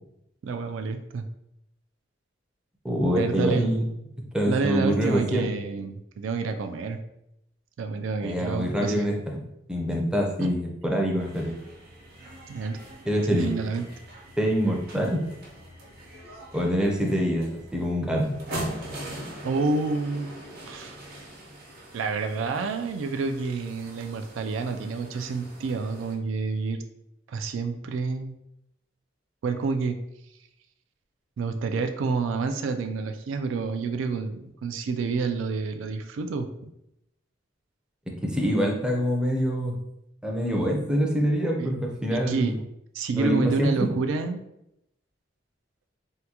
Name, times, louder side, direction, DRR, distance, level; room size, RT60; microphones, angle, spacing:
voice 1, 0.4-1.2 3.2-3.7 4.5-7.0 7.8-9.1 10.4-10.5 12.5-12.8 13.3-13.8 19.4-20.3 20.6-21.0 21.9-26.8 27.3-28.3 29.4-30.0 31.4-36.7 41.6-41.7 42.1-42.6 42.9-44.4, right 4 dB, 85° right, 7 dB, 0.3 m, -28 dB
voice 2, 2.8-3.9 4.3-5.5 8.2-9.1 9.7-11.5 13.1-13.5 14.4-15.2 16.5-18.3 38.2-39.7 40.2-42.6 43.1-43.9, equal, 5° right, 0 dB, 0.5 m, -25 dB
sound 1, 11.2-26.1, right 1 dB, 50° right, 0.8 m, -42 dB
3.6 x 2.2 x 2.8 m, 0.82 s
head